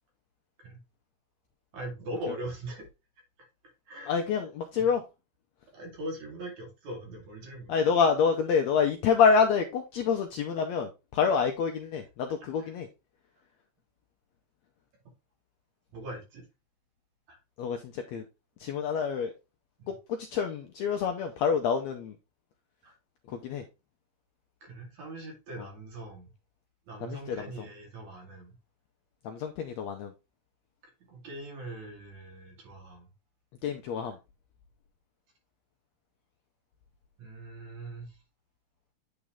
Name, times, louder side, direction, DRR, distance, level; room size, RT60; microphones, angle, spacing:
voice 1, 1.7-2.8 3.9-4.1 4.7-4.9 5.7-7.8 11.3-11.4 15.9-16.4 17.3-17.4 19.8-19.9 22.8-22.9 24.6-26.3 26.9-28.5 31.1-33.1 37.2-38.1, right 1 dB, 60° right, 3.4 m, -41 dB
voice 2, 4.1-5.0 7.7-12.9 17.6-18.2 18.6-19.3 19.9-22.1 23.3-23.6 25.6-25.7 27.0-27.4 29.2-30.1 33.6-34.2, left 6 dB, 80° left, 1.6 m, -27 dB
8.7 x 4.0 x 3.5 m
omnidirectional pair, 3.7 m